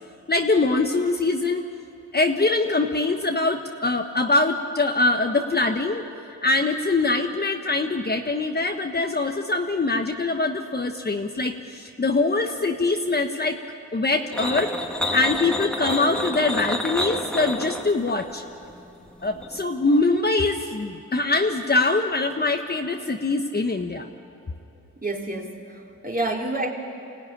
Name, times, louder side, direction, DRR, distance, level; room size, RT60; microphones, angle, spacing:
voice 1, 0.3-1.7 2.1-6.0 6.4-13.6 13.9-14.7 15.1-18.4 19.2-24.1, left 3 dB, 30° left, 4 dB, 1.3 m, -23 dB
sound 1, 14.3-19.7, left 1 dB, 5° left, 1.9 m, -29 dB
voice 2, 25.0-26.7, right 2 dB, 25° right, 0 dB, 3.5 m, -28 dB
24.5 x 16.5 x 9.9 m, 2.6 s
cardioid pair, 70°, 35 cm